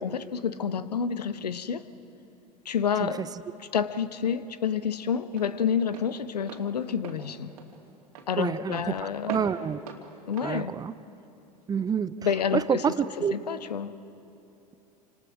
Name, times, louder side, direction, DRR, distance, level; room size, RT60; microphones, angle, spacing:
voice 1, 0.0-1.9 2.6-3.2 3.6-7.5 8.3-9.4 10.3-10.8 12.2-14.0, left 7 dB, 75° left, 0.9 m, -29 dB
Walk footsteps, 3.4-11.8, right 5 dB, 65° right, 2.6 m, -46 dB
voice 2, 8.4-8.8 9.3-9.8 10.4-10.9 11.7-12.1 12.5-12.8 13.2-13.3, right 7 dB, 20° right, 0.5 m, -27 dB
28.5 x 26.0 x 4.8 m
figure-of-eight pair, 80°, 21 cm